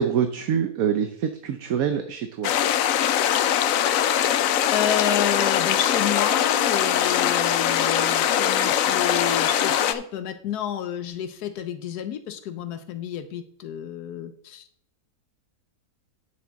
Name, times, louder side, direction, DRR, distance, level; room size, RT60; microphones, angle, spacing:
voice 1, 0.0-2.5, right 8 dB, 70° right, 7 dB, 1.1 m, -25 dB
sound 1, 2.4-9.9, left 10 dB, 70° left, 0.9 m, -22 dB
voice 2, 4.7-14.6, left 9 dB, 90° left, 9 dB, 1.2 m, -30 dB
9.2 x 6.7 x 3.9 m, 0.64 s
omnidirectional pair, 1.6 m